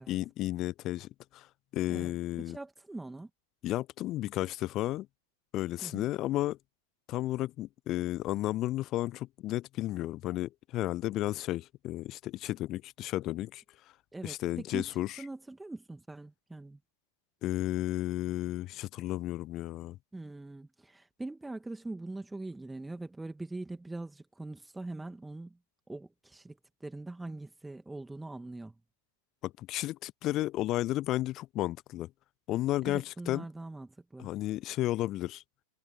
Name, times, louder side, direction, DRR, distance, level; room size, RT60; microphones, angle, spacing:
voice 1, 0.1-1.5 1.7-2.6 3.6-5.1 5.5-6.6 7.1-13.6 14.2-15.2 17.4-20.0 29.4-32.1 32.5-33.5 34.2-35.4, left 15 dB, 35° left, 0.6 m, -33 dB
voice 2, 2.5-3.3 5.8-6.0 14.1-16.8 20.1-25.6 25.9-28.7 32.8-34.3, right 2 dB, 5° right, 2.4 m, -42 dB
figure-of-eight pair, 90°, 0 cm